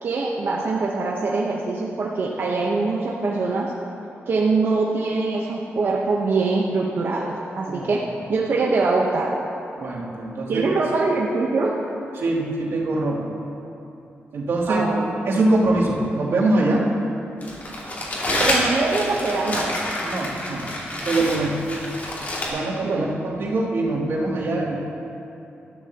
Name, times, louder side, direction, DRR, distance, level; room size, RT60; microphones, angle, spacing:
voice 1, 0.0-3.7 4.3-8.0 8.3-9.3 10.5-11.8 14.7-15.1 18.4-19.8 22.8-23.1, right 3 dB, 55° right, -3 dB, 1.0 m, -23 dB
voice 2, 9.8-10.7 12.1-13.3 14.3-14.8 15.3-16.9 20.0-20.7 21.0-21.6 22.5-24.7, right 2 dB, 90° right, -7 dB, 2.9 m, -23 dB
Crumpling crinkling, 17.4-22.5, left 1 dB, 40° left, 2.4 m, -27 dB
18.5 x 12.5 x 2.9 m, 2.9 s
wide cardioid pair, 150°, 4 cm